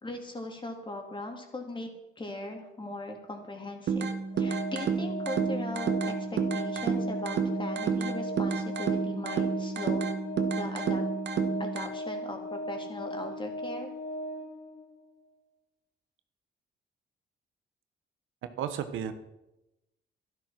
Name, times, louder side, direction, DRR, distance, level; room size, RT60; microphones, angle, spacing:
voice 1, 0.0-4.1 4.4-10.1 10.6-11.0 11.6-13.9, left 2 dB, 25° left, 3 dB, 3.2 m, -39 dB
sound 1, 3.9-11.9, right 5 dB, 60° right, 1.5 m, -30 dB
Organ, 4.3-15.0, equal, 55° left, 3.4 m, -38 dB
voice 2, 18.6-19.1, right 9 dB, 85° right, 9 dB, 1.2 m, -32 dB
12.5 x 12.0 x 5.9 m, 0.94 s
cardioid pair, 90°, 20 cm